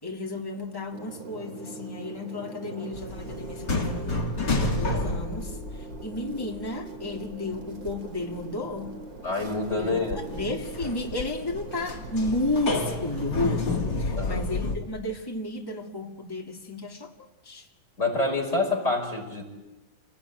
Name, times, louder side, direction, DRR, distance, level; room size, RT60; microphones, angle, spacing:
voice 1, 0.0-4.2 4.6-9.0 9.8-10.0 10.3-17.1 17.4-17.7, left 2 dB, 10° left, 2.1 m, -32 dB
sound 1, 0.9-13.7, right 3 dB, 45° right, 2.5 m, -42 dB
sound 2, 2.9-6.7 7.0-8.1 8.4-8.5 9.0-14.7, left 2 dB, 60° left, 3.4 m, -30 dB
voice 2, 9.2-10.2 14.2-14.4 18.0-19.4, left 3 dB, 35° left, 6.3 m, -27 dB
29.0 x 19.0 x 9.0 m
omnidirectional pair, 2.2 m